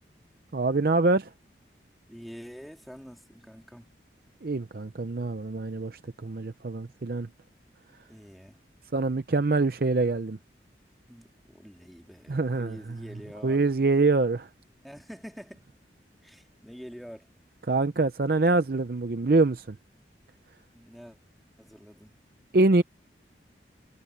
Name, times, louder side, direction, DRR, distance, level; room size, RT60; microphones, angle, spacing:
voice 1, 0.5-1.3 4.4-7.3 8.9-10.4 12.3-12.8 13.4-14.5 17.7-19.7 22.5-22.8, right 3 dB, 55° right, 0.6 m, -25 dB
voice 2, 2.1-3.9 8.1-8.6 11.1-13.7 14.8-15.6 16.2-17.3 20.7-21.2 21.6-22.1, equal, ahead, 2.5 m, -46 dB
head